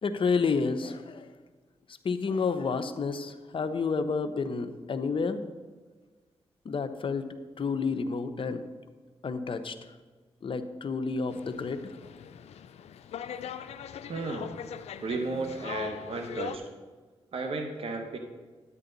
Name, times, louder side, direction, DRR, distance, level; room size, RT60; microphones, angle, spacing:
voice 1, 0.0-1.3 2.0-5.4 6.6-7.3 7.6-8.7 9.2-9.8 10.4-11.9, left 4 dB, 55° left, 8 dB, 0.8 m, -30 dB
sound 1, 11.3-16.6, left 8 dB, 85° left, 0.4 m, -41 dB
voice 2, 14.1-14.5 15.0-16.6 17.3-18.2, right 3 dB, 60° right, 4 dB, 1.1 m, -33 dB
11.0 x 8.9 x 4.0 m, 1.4 s
cardioid pair, 65°, 11 cm